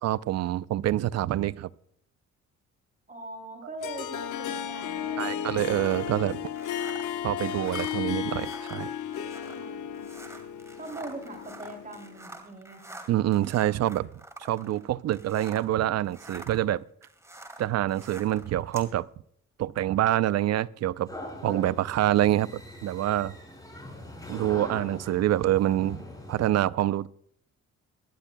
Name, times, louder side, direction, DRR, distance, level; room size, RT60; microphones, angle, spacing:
voice 1, 0.0-1.7 5.2-6.4 7.2-8.9 13.1-14.1 14.4-16.8 17.6-19.1 19.6-21.1 21.4-23.3 24.3-26.0 26.3-27.1, right 13 dB, 60° right, 17 dB, 0.5 m, -26 dB
voice 2, 3.1-5.6 9.5-10.1 10.7-13.0, right 2 dB, 25° right, 3 dB, 3.0 m, -42 dB
Harp, 3.8-12.3, left 9 dB, 75° left, 1.2 m, -34 dB
sound 1, 5.8-15.8 16.0-18.9, right 1 dB, 10° right, 2.3 m, -47 dB
sound 2, 21.1-26.5, left 1 dB, 10° left, 5.1 m, -42 dB
22.5 x 11.5 x 2.2 m, 0.67 s
cardioid pair, 90°, 30 cm